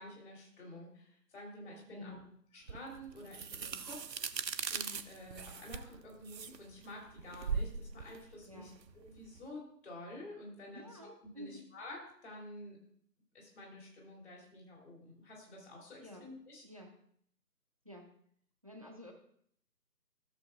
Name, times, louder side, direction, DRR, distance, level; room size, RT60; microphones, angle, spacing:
voice 1, 0.0-2.2 2.5-4.4 4.7-12.8 13.3-16.6, left 1 dB, 40° left, -1 dB, 3.2 m, -50 dB
voice 2, 1.9-2.3 8.4-8.8 10.7-11.6 16.0-16.3 16.6-16.9 17.8-18.1 18.6-19.1, left 1 dB, 20° right, 3 dB, 0.6 m, -50 dB
sound 1, 2.7-9.4, right 6 dB, 80° right, 0.7 m, -40 dB
14.0 x 6.8 x 2.4 m, 0.63 s
figure-of-eight pair, 150°, 49 cm